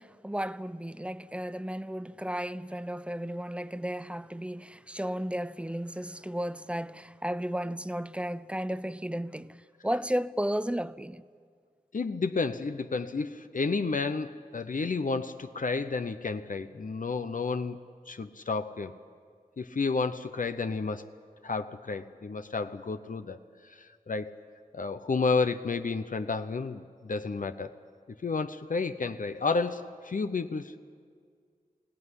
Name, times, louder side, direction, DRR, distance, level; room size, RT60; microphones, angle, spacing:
voice 1, 0.0-11.2, equal, 5° right, 0.5 m, -34 dB
voice 2, 11.9-17.8 18.1-18.9 19.6-21.1 21.4-23.4 23.6-24.3 24.7-27.7 28.2-30.8, left 4 dB, 60° left, 0.7 m, -31 dB
23.5 x 17.0 x 9.8 m
wide cardioid pair, 70°, 15 cm